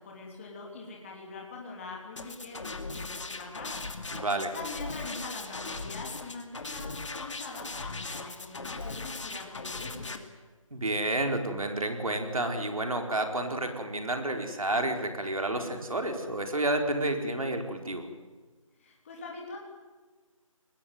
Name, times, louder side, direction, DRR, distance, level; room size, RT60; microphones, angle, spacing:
voice 1, 0.0-4.2 4.5-10.3 18.8-19.6, left 3 dB, 25° left, -1 dB, 3.1 m, -43 dB
sound 1, 2.2-10.2, left 3 dB, 60° left, 2.5 m, -39 dB
voice 2, 4.1-4.6 10.7-18.1, right 1 dB, 80° right, 5 dB, 4.5 m, -30 dB
23.0 x 20.0 x 9.5 m, 1.4 s
figure-of-eight pair, 165°, 18 cm